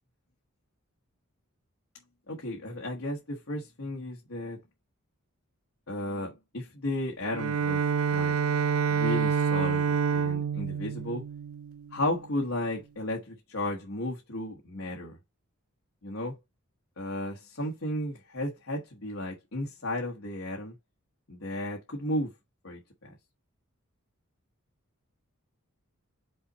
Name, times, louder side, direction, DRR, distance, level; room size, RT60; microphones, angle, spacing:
voice 1, 2.3-4.6 5.9-7.8 8.1-8.4 8.9-11.2 11.9-15.2 16.0-16.4 17.0-20.7 21.3-22.3 22.6-23.1, left 1 dB, 65° left, 1.3 m, -34 dB
Bowed string instrument, 7.3-12.2, right 7 dB, 75° right, 0.5 m, -28 dB
5.6 x 4.3 x 4.0 m
head